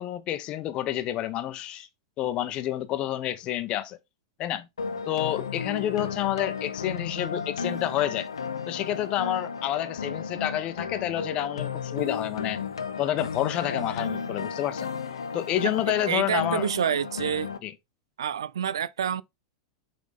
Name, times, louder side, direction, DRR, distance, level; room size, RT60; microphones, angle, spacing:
voice 1, 0.0-1.9 2.2-4.0 4.4-4.7 5.1-8.3 8.7-12.6 13.0-14.9 15.3-16.7 17.6-17.7, left 12 dB, 40° left, 0.9 m, -29 dB
sound 1, 4.8-17.6, left 5 dB, 90° left, 0.8 m, -34 dB
voice 2, 16.1-17.5 18.2-19.2, right 9 dB, 80° right, 0.4 m, -28 dB
8.2 x 3.8 x 3.6 m
hypercardioid pair, 100°, 3 cm